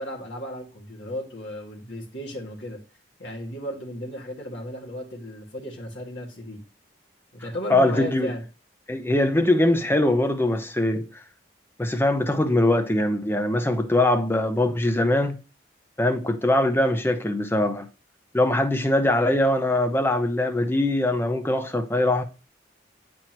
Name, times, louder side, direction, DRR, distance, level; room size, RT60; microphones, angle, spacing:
voice 1, 0.0-2.8 3.2-6.6 7.3-8.4, equal, 75° left, 2.0 m, -35 dB
voice 2, 7.7-8.3 8.9-11.0 11.8-15.4 16.0-17.9 18.3-22.2, left 1 dB, 10° left, 0.6 m, -22 dB
9.1 x 4.4 x 3.0 m
head